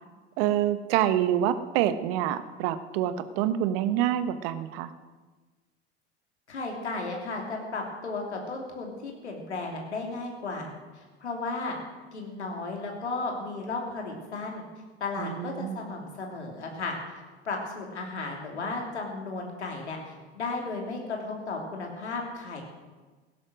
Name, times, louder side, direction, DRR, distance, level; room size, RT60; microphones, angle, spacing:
voice 1, 0.4-4.9 15.2-15.8, right 11 dB, 60° right, 11 dB, 1.2 m, -27 dB
voice 2, 6.5-10.7 11.2-11.8 12.1-14.6 15.0-16.9 17.4-22.6, left 3 dB, 85° left, 0 dB, 3.0 m, -34 dB
17.5 x 9.9 x 6.3 m, 1.3 s
figure-of-eight pair, 75°, 33 cm